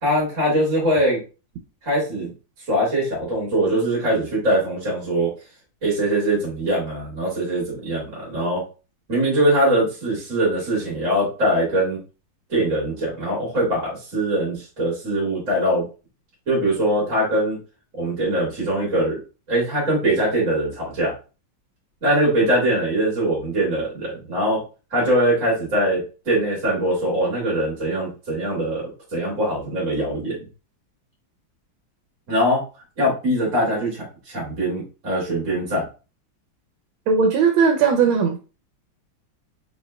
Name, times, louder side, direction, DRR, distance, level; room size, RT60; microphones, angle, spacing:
voice 1, 0.0-1.2 1.8-2.3 2.7-5.3 5.8-8.6 9.1-12.0 12.5-15.8 16.5-17.6 17.9-19.2 19.5-21.1 22.0-24.6 24.9-30.4 32.3-32.6 33.0-35.9, right 1 dB, 40° right, -5 dB, 2.2 m, -22 dB
voice 2, 37.1-38.4, right 5 dB, 80° right, 4 dB, 1.4 m, -18 dB
4.7 x 4.2 x 2.2 m, 0.33 s
omnidirectional pair, 2.2 m